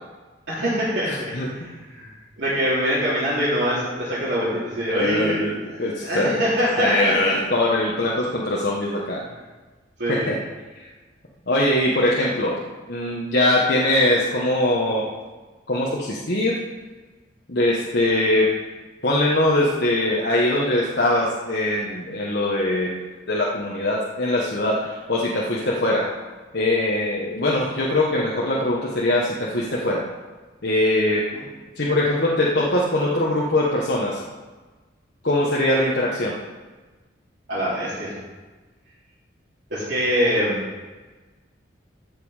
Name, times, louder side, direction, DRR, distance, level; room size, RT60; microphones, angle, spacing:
voice 1, 0.5-1.1 1.5-2.1 2.4-7.3 10.0-10.3 31.3-31.4 37.5-38.1 39.7-40.6, equal, 70° right, -10 dB, 3.0 m, -24 dB
voice 2, 1.1-1.5 4.9-6.4 6.8-9.2 10.1-10.4 11.5-12.5 12.9-15.1 15.7-16.6 17.5-18.5 19.0-26.0 26.5-30.0 30.6-31.3 31.8-34.2 35.2-36.3, left 1 dB, 55° left, -4 dB, 1.3 m, -22 dB
15.0 x 5.5 x 5.0 m, 1.3 s
head